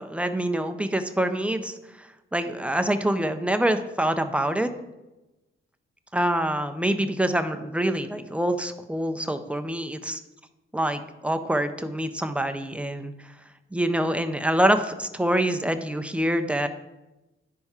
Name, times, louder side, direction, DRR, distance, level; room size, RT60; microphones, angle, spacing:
voice 1, 0.0-4.7 6.1-10.2 10.7-13.1 13.7-16.7, right 1 dB, 5° right, 7 dB, 0.3 m, -26 dB
9.9 x 5.4 x 2.3 m, 1.0 s
cardioid pair, 140°, 21 cm